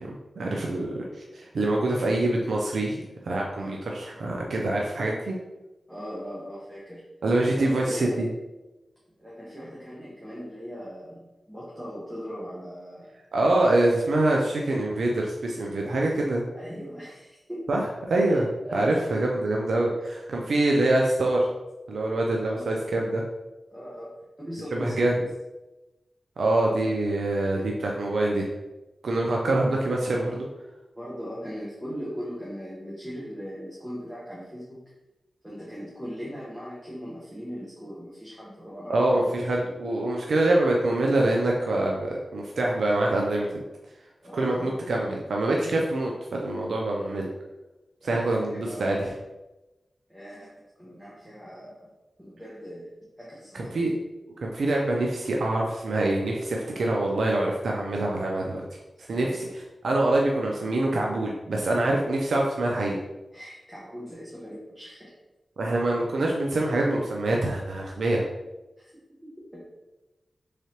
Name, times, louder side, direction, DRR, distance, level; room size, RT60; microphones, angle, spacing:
voice 1, 0.0-5.3 7.2-8.3 13.3-16.4 17.7-21.5 21.9-23.2 24.7-25.1 26.4-28.5 29.0-30.5 38.9-43.6 44.3-47.3 48.0-49.1 53.5-53.9 54.4-63.0 65.6-68.2, right 2 dB, 85° right, -1 dB, 0.4 m, -25 dB
voice 2, 5.9-7.0 7.4-8.3 9.2-13.1 13.8-14.0 15.8-15.9 16.5-17.8 18.3-18.4 18.6-19.4 22.4-22.7 23.7-24.1 24.4-25.2 30.9-34.8 35.4-39.2 39.6-39.8 44.2-44.8 48.0-48.2 48.5-49.1 50.1-51.9 52.2-52.9 53.2-54.0 59.1-59.4 63.3-65.1 68.8-68.9 69.2-69.6, equal, 5° right, -7 dB, 1.0 m, -39 dB
3.6 x 3.2 x 2.8 m, 1.1 s
cardioid pair, 65°, 0 cm